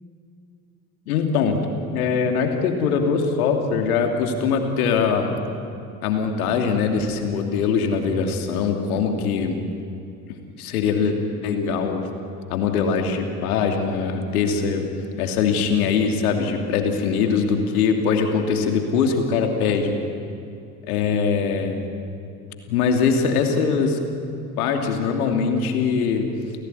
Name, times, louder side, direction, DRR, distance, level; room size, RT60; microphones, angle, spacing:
voice 1, 1.1-1.6 1.9-5.3 6.0-9.6 10.6-11.2 11.4-12.1 12.5-14.9 15.2-20.0 20.9-21.8 22.7-24.0 24.6-26.3, left 5 dB, 70° left, 3 dB, 3.0 m, -22 dB
29.5 x 17.0 x 9.7 m, 2.6 s
figure-of-eight pair, 60°, 45 cm